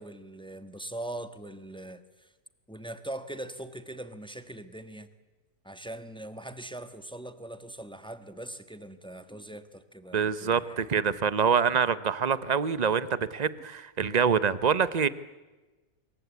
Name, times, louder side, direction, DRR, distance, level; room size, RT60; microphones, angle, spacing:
voice 1, 0.0-2.3 2.7-5.1 5.6-10.9, right 1 dB, 5° left, 10 dB, 1.3 m, -41 dB
voice 2, 10.1-15.1, right 6 dB, 35° right, 16 dB, 0.9 m, -25 dB
26.5 x 23.5 x 8.4 m, 1.2 s
omnidirectional pair, 1.6 m